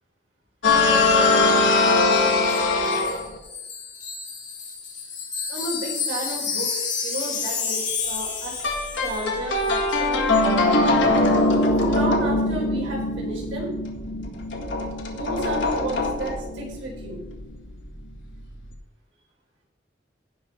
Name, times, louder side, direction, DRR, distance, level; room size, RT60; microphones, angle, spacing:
sound 1, 0.6-3.4 8.6-18.7, left 2 dB, 70° left, 1.9 m, -22 dB
Wind chime, 2.1-9.4 9.6-9.8, left 5 dB, 40° left, 3.7 m, -31 dB
voice 1, 5.5-8.6 9.0-10.3 11.8-13.7 15.1-17.2, right 1 dB, 85° right, -3 dB, 4.4 m, -32 dB
17.0 x 5.9 x 4.4 m, 0.98 s
head